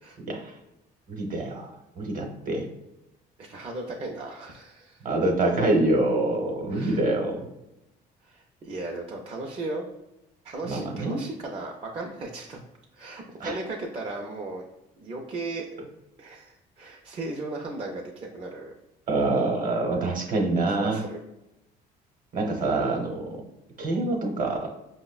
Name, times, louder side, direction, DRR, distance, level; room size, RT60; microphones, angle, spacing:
voice 1, 1.1-2.7 5.0-7.4 10.6-11.2 13.4-13.6 19.1-21.0 22.3-23.4 23.8-24.7, right 2 dB, 50° right, 2 dB, 0.8 m, -26 dB
voice 2, 3.4-5.0 6.7-7.0 8.2-9.9 10.4-12.6 12.9-14.6 15.0-15.7 16.2-18.7 20.7-21.2, right 2 dB, 35° right, -1 dB, 0.4 m, -36 dB
5.1 x 2.1 x 2.3 m, 0.88 s
cardioid pair, 110°, 17 cm